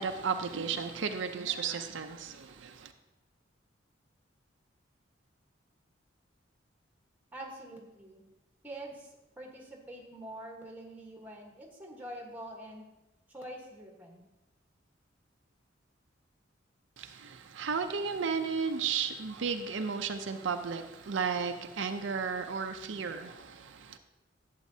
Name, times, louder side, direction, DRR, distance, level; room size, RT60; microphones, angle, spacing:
voice 1, 0.0-2.4 17.6-23.5, right 5 dB, 80° right, 7 dB, 0.5 m, -33 dB
voice 2, 7.3-8.2 8.6-12.9 13.3-14.3, right 1 dB, 10° right, 0 dB, 1.3 m, -45 dB
11.5 x 8.2 x 2.8 m, 1.0 s
head